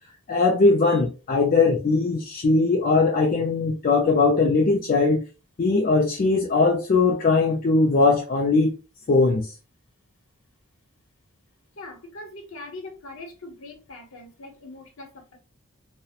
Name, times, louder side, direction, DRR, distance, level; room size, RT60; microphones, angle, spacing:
voice 1, 0.3-5.2 5.6-8.7 9.1-9.5, left 3 dB, 40° left, 0.3 m, -20 dB
voice 2, 11.8-15.4, left 2 dB, 65° left, 0.8 m, -41 dB
2.7 x 2.0 x 2.3 m
head